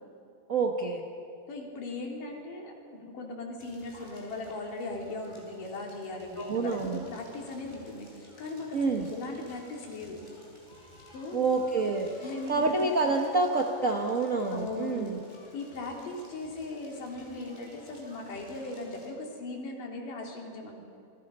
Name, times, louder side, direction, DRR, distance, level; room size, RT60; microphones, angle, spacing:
voice 1, 0.5-1.0 6.4-7.0 8.7-9.1 11.3-12.1 12.5-15.2, right 3 dB, 70° right, 1 dB, 0.7 m, -27 dB
voice 2, 1.5-10.2 11.1-11.5 12.2-12.7 14.5-15.2 15.5-20.8, left 2 dB, 90° left, 0 dB, 4.7 m, -38 dB
Crackle, 3.6-19.1, left 1 dB, 15° left, 5.7 m, -54 dB
28.5 x 22.5 x 5.5 m, 2.6 s
omnidirectional pair, 3.7 m